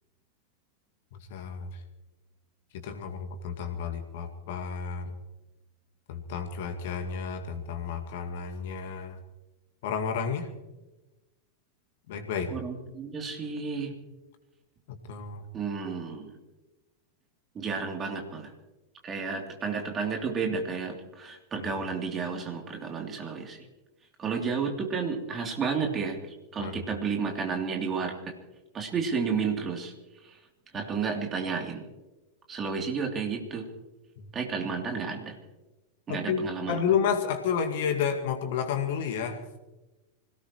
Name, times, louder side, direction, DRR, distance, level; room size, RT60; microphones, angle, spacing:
voice 1, 1.3-1.8 2.7-5.2 6.1-9.2 9.8-10.5 12.1-12.5 14.9-15.5 21.6-21.7 26.6-26.7 30.7-30.8 34.2-34.3 36.1-39.4, left 7 dB, 50° left, 5 dB, 2.1 m, -31 dB
voice 2, 12.5-13.9 15.5-16.4 17.5-18.5 19.0-23.6 24.2-26.2 26.5-28.3 28.7-29.9 30.2-30.4 30.7-31.8 32.5-33.7 34.3-35.4 36.1-36.8, right 5 dB, 25° right, 2 dB, 3.1 m, -31 dB
25.5 x 17.5 x 3.1 m, 1.1 s
figure-of-eight pair, 90°, 0 cm